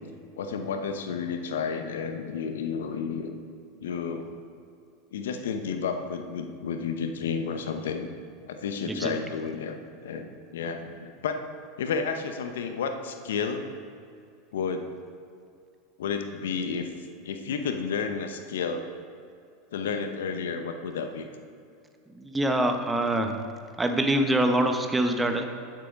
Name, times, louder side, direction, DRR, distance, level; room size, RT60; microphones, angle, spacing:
voice 1, 0.4-3.3 3.8-4.3 5.1-8.1 8.5-9.8 10.0-11.4 11.8-13.6 14.5-14.9 16.0-16.9 17.2-18.9 19.7-21.3, left 5 dB, 75° left, 7 dB, 0.8 m, -31 dB
voice 2, 22.2-23.4 23.8-25.5, right 1 dB, 10° right, 5 dB, 1.1 m, -24 dB
10.5 x 7.6 x 5.2 m, 2.5 s
hypercardioid pair, 90°, 0 cm